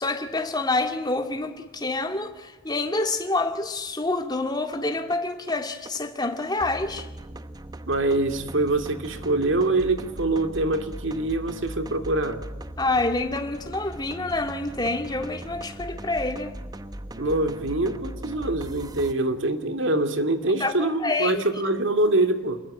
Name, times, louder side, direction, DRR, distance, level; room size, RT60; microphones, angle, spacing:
voice 1, 0.0-7.1 12.8-16.6 20.6-21.4, left 2 dB, 20° left, 2.1 m, -27 dB
sound 1, 4.4-19.1, right 1 dB, 20° right, 0.9 m, -39 dB
voice 2, 7.9-12.4 17.2-22.6, right 2 dB, 70° right, 2.5 m, -24 dB
27.0 x 22.0 x 8.9 m
head